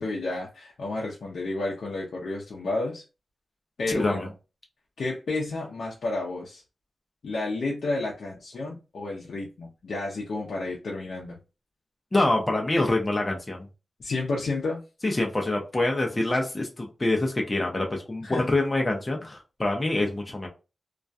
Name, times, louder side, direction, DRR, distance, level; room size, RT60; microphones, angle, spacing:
voice 1, 0.0-3.0 3.8-4.3 5.0-6.6 7.2-11.4 14.0-14.8 18.2-18.5, left 2 dB, 75° left, -3 dB, 0.5 m, -31 dB
voice 2, 4.0-4.3 12.1-13.7 15.0-20.5, left 2 dB, 25° left, 1 dB, 0.5 m, -26 dB
2.3 x 2.2 x 2.5 m, 0.30 s
wide cardioid pair, 110°, 0 cm